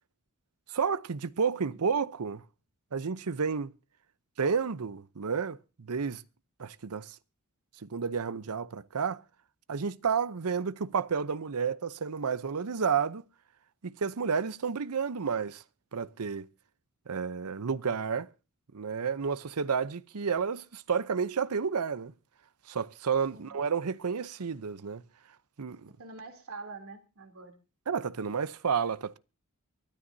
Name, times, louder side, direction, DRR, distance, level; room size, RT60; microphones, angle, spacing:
voice 1, 0.7-2.4 2.9-3.7 4.4-6.2 6.6-7.2 7.8-9.2 9.7-13.2 13.8-15.6 15.9-16.5 17.1-18.3 18.7-22.1 22.7-25.0 25.6-25.9 27.9-29.2, right 6 dB, 85° right, 0.7 m, -31 dB
voice 2, 26.0-27.5 28.9-29.0, right 3 dB, 70° right, 3.1 m, -45 dB
24.0 x 12.5 x 2.7 m
head